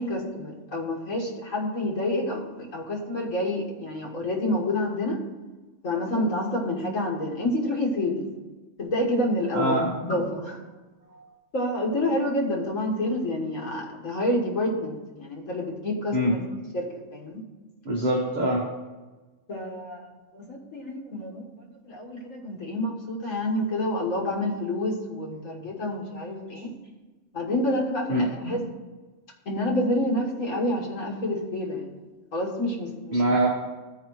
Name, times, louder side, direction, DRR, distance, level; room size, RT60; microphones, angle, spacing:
voice 1, 0.0-5.2 5.8-8.3 8.8-10.6 11.5-16.4 16.7-17.4 19.5-20.0 20.3-21.5 21.9-26.7 27.3-28.6 29.5-31.9 32.3-33.2, left 1 dB, 80° left, 0 dB, 2.0 m, -28 dB
voice 2, 9.5-9.9 16.1-16.4 17.8-18.7 28.1-28.3 33.1-33.5, right 1 dB, 35° right, -3 dB, 1.2 m, -23 dB
14.0 x 4.8 x 4.7 m, 1.2 s
omnidirectional pair, 1.3 m